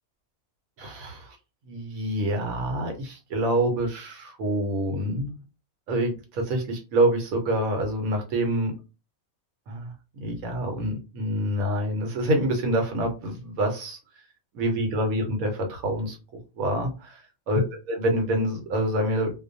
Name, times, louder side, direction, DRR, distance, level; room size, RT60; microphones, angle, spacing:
voice 1, 0.8-1.4 1.7-5.4 5.9-8.7 9.7-14.0 14.5-16.2 16.6-19.4, right 1 dB, 75° right, 3 dB, 1.1 m, -26 dB
2.4 x 2.1 x 2.6 m, 0.30 s
omnidirectional pair, 1.5 m